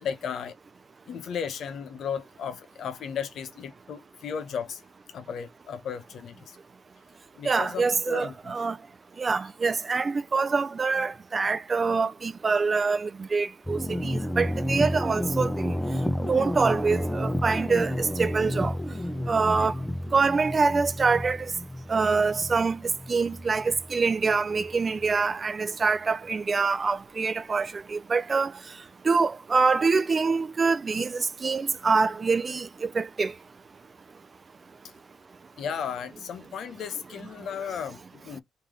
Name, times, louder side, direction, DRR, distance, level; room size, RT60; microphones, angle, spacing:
voice 1, 0.0-0.5 1.1-4.8 5.1-6.6 7.4-8.4 19.5-19.7 35.6-38.4, left 7 dB, 65° left, 0.8 m, -35 dB
voice 2, 7.4-8.8 9.2-15.7 16.2-18.7 19.3-19.7 20.1-21.5 21.9-28.5 29.0-33.3, right 4 dB, 35° right, 0.4 m, -25 dB
sound 1, 13.6-25.1, left 1 dB, 5° left, 0.7 m, -31 dB
3.3 x 2.7 x 3.6 m
cardioid pair, 90°, 0 cm